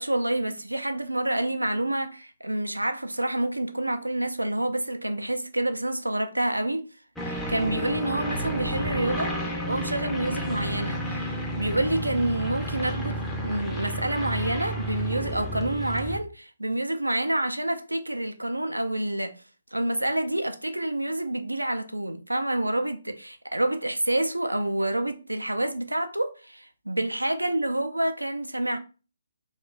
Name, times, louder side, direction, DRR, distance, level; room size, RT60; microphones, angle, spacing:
voice 1, 0.0-6.8 7.2-19.3 19.7-28.8, right 1 dB, 85° right, 0.5 m, -28 dB
sound 1, 7.2-16.2, right 1 dB, 5° left, 0.5 m, -31 dB
3.1 x 2.4 x 3.7 m
figure-of-eight pair, 140°, 0 cm